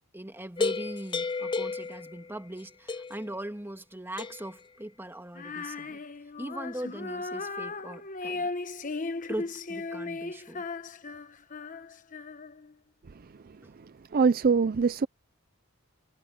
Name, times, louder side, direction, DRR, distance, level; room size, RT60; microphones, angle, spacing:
voice 1, 0.1-6.0 6.4-8.5 9.3-10.7 13.6-13.7, right 1 dB, 10° right, 1.8 m, -40 dB
sound 1, 0.6-2.6 2.9-3.4 4.2-4.6, left 4 dB, 25° left, 0.5 m, -33 dB
Female singing, 5.3-12.7, left 3 dB, 40° left, 1.0 m, -37 dB
voice 2, 13.4-15.1, right 5 dB, 45° right, 0.5 m, -25 dB
head